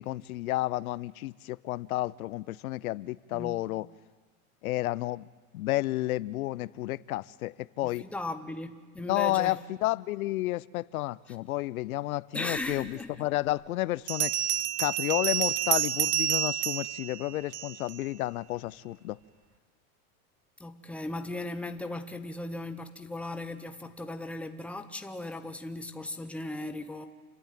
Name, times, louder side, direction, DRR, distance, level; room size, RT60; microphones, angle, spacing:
voice 1, 0.0-3.9 4.6-5.2 5.5-8.1 9.1-14.3 14.8-19.2, left 17 dB, 75° left, 0.7 m, -31 dB
voice 2, 3.3-3.7 7.8-9.6 12.3-13.3 20.6-27.1, left 2 dB, 5° left, 0.9 m, -37 dB
Bell, 12.9-13.0 14.1-18.0, right 11 dB, 30° right, 0.6 m, -29 dB
28.5 x 11.5 x 9.0 m
supercardioid pair, 145°, 43 cm